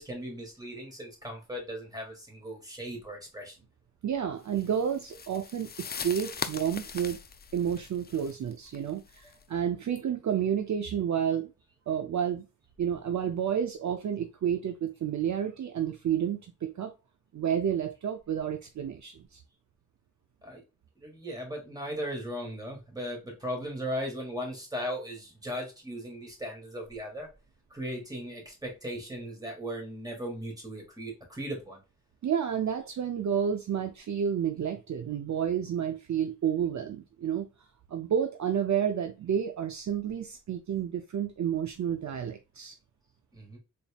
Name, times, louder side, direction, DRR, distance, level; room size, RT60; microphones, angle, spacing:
voice 1, 0.0-3.6 9.2-9.4 20.4-20.6 21.0-27.3 27.7-31.8 43.3-43.6, equal, 10° right, 2.1 m, -37 dB
voice 2, 4.0-7.2 7.5-11.5 11.9-12.4 12.8-16.9 17.3-19.4 32.2-37.5 37.9-42.8, right 8 dB, 55° right, 0.5 m, -30 dB
sound 1, 4.5-9.4, left 6 dB, 30° left, 0.4 m, -41 dB
4.0 x 3.5 x 2.3 m
cardioid pair, 80°, 33 cm